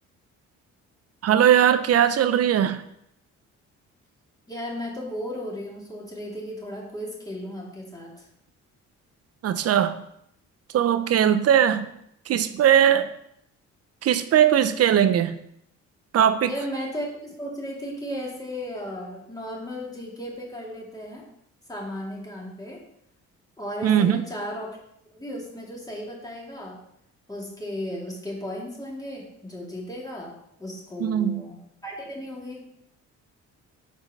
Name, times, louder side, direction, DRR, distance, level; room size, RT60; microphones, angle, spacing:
voice 1, 1.2-2.8 9.4-10.0 10.7-11.9 12.3-13.1 14.0-15.4 16.1-16.5 23.8-24.2 31.0-31.4, right 9 dB, 55° right, 11 dB, 0.5 m, -19 dB
voice 2, 4.5-8.3 16.5-21.3 21.7-22.8 23.6-24.8 25.1-26.8 27.3-32.7, equal, 10° left, -3 dB, 2.0 m, -35 dB
4.7 x 4.4 x 5.3 m, 0.75 s
cardioid pair, 90°, 30 cm